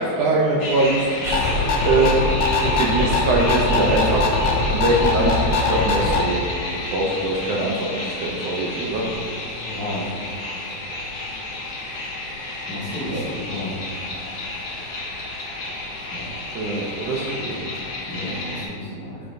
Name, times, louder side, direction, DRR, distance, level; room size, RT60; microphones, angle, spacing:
voice 1, 0.0-2.2 2.7-6.4 6.7-9.1 13.1-13.3 16.5-17.7, right 2 dB, 75° right, -2 dB, 1.5 m, -23 dB
sound 1, 0.6-18.7, left 2 dB, 55° left, 1.4 m, -31 dB
sound 2, 1.3-6.2, left 3 dB, 75° left, 1.6 m, -21 dB
voice 2, 9.6-10.1 12.7-13.8 16.1-16.3 18.1-19.2, left 1 dB, 90° left, -9 dB, 0.8 m, -32 dB
8.0 x 3.4 x 3.9 m, 2.4 s
omnidirectional pair, 3.4 m